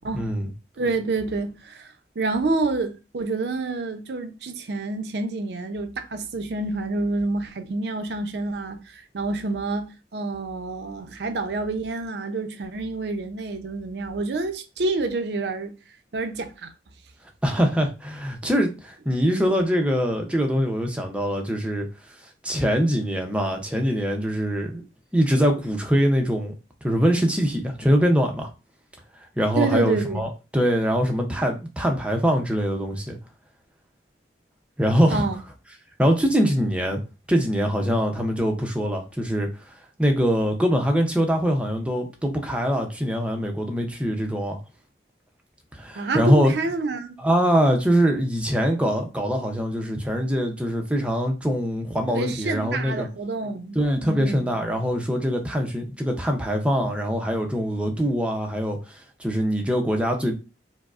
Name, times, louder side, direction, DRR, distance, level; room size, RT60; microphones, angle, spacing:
voice 1, 0.1-0.5 17.4-21.9 22.4-24.8 25.1-26.5 26.8-28.5 29.4-33.2 34.8-35.3 36.0-37.0 37.3-39.5 40.0-44.6 45.7-46.5 47.2-53.1 53.7-60.4, equal, 5° right, 0.5 m, -23 dB
voice 2, 0.8-15.7 16.1-16.7 29.6-30.2 35.1-35.4 46.0-47.2 52.1-54.7, right 3 dB, 70° right, 0.5 m, -28 dB
4.7 x 2.0 x 2.4 m
head